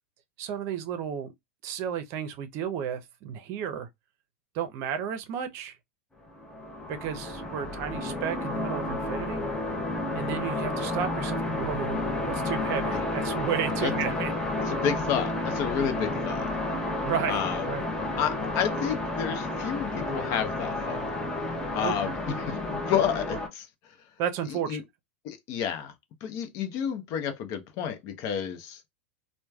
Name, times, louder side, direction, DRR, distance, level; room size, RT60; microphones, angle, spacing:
voice 1, 0.4-1.3 1.6-3.9 4.5-5.8 6.9-9.4 10.1-14.3 17.0-17.4 17.7-17.8 21.8-21.9 24.2-24.9, right 8 dB, 45° right, 0.6 m, -32 dB
sound 1, 6.3-23.5, left 2 dB, 10° left, 0.7 m, -31 dB
voice 2, 14.6-16.5 17.3-17.6 18.2-21.0 21.7-23.7 24.7-24.8 25.2-25.9 26.2-28.8, left 8 dB, 50° left, 0.7 m, -30 dB
3.1 x 2.2 x 2.2 m
hypercardioid pair, 115°, 6 cm